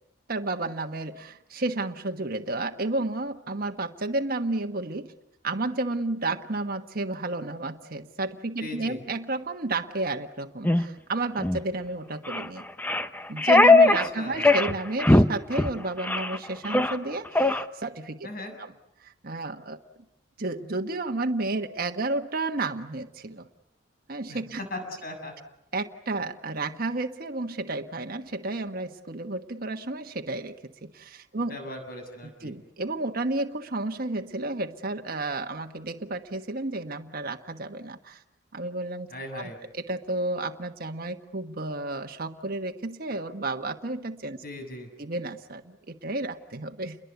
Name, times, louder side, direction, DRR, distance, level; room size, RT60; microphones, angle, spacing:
voice 1, 0.3-5.1 5.4-12.7 13.3-18.3 18.6-18.7 19.0-19.8 20.4-23.5 24.1-24.6 25.7-30.5 30.8-31.6 32.4-38.2 38.5-39.1 39.3-39.4 39.7-44.4 45.0-47.0, right 2 dB, 55° right, 5 dB, 1.4 m, -31 dB
voice 2, 8.6-9.0 13.8-14.5 18.2-18.6 24.3-25.3 31.5-32.5 39.1-39.6 44.4-44.9, left 1 dB, 55° left, 6 dB, 7.4 m, -38 dB
sound 1, 10.6-10.8 11.4-11.6 12.3-12.5 12.8-14.1 14.4-14.7 15.0-15.3 15.5-15.7 16.0-16.4 16.6-17.0 17.4-17.6, left 2 dB, 10° left, 0.9 m, -19 dB
29.5 x 22.5 x 8.2 m, 0.81 s
head